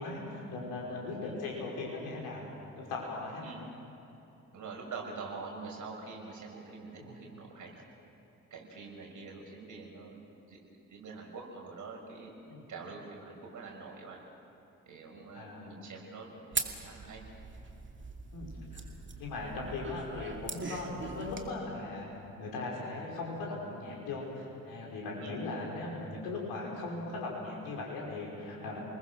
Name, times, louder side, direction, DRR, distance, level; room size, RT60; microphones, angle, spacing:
voice 1, 0.0-2.5 2.8-3.6 7.0-7.2 12.5-12.7 15.3-15.8 18.3-18.8 19.2-22.1 22.4-28.8, left 3 dB, 65° left, -2 dB, 5.4 m, -39 dB
voice 2, 4.5-7.8 8.5-10.6 10.9-12.3 12.7-14.2 14.9-17.3 25.2-25.4, right 4 dB, 50° right, -1 dB, 5.9 m, -45 dB
Spoons beating, 16.5-21.5, right 4 dB, 30° right, 2.3 m, -40 dB
29.0 x 21.0 x 6.4 m, 2.9 s
figure-of-eight pair, 40°, 39 cm